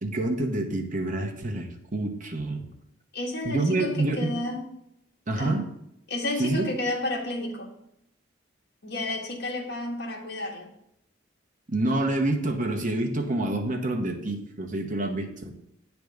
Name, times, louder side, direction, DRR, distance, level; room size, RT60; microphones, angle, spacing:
voice 1, 0.0-2.7 3.4-4.3 5.3-5.6 6.4-6.7 11.7-15.5, right 2 dB, 40° right, 3 dB, 1.0 m, -27 dB
voice 2, 3.1-4.7 5.4-5.6 6.1-7.7 8.8-10.7, left 2 dB, 60° left, 0 dB, 1.5 m, -31 dB
9.4 x 3.5 x 6.4 m, 0.78 s
head